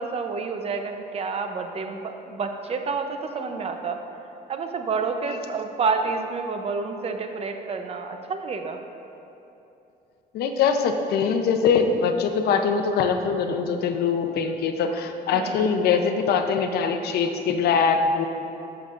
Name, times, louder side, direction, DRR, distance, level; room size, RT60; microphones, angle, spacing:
voice 1, 0.0-4.0 4.5-8.8 15.3-15.6, right 4 dB, 35° right, 6 dB, 0.7 m, -29 dB
voice 2, 10.3-18.3, left 5 dB, 70° left, 6 dB, 0.7 m, -22 dB
14.0 x 6.7 x 2.6 m, 2.9 s
cardioid pair, 110°, 17 cm